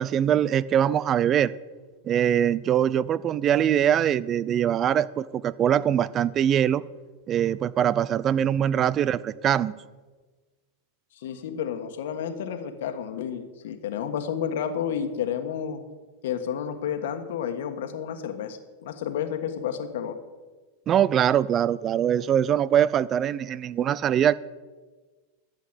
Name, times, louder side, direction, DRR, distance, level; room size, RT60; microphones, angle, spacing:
voice 1, 0.0-1.5 2.1-6.8 7.3-9.7 20.9-24.3, right 9 dB, 30° right, 20 dB, 0.4 m, -22 dB
voice 2, 11.1-15.8 16.2-20.1, left 8 dB, 75° left, 7 dB, 1.5 m, -31 dB
12.0 x 7.6 x 8.1 m, 1.3 s
hypercardioid pair, 120°, 0 cm